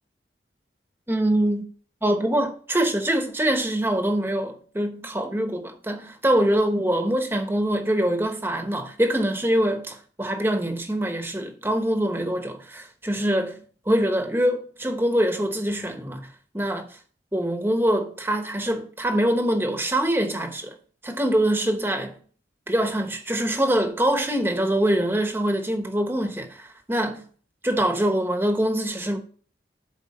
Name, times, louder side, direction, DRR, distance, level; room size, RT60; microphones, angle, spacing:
voice 1, 1.1-1.6 2.0-13.6 13.9-17.0 17.3-20.8 21.0-22.2 22.7-27.2 27.6-29.2, right 1 dB, 15° right, 1.1 m, -24 dB
11.0 x 4.5 x 4.3 m
head